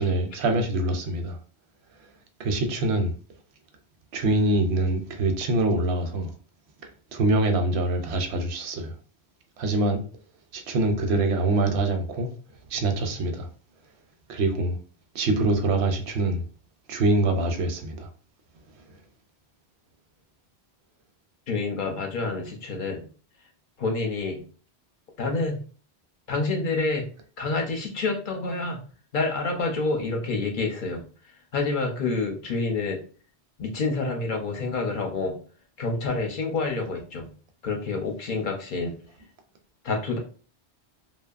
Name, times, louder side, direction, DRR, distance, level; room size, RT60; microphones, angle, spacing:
voice 1, 0.0-1.4 2.4-3.1 4.1-6.3 7.1-8.9 9.6-10.0 10.5-12.3 12.7-13.5 14.3-14.8 15.1-16.4 16.9-18.1, right 2 dB, 85° right, 0.9 m, -24 dB
voice 2, 21.5-23.1 23.8-24.4 25.2-25.6 26.3-27.0 27.4-28.8 29.1-31.0 31.5-33.0 33.6-35.4 35.8-37.3 37.6-38.9 39.8-40.2, left 3 dB, 55° left, 0.7 m, -28 dB
2.7 x 2.2 x 2.3 m
omnidirectional pair, 1.1 m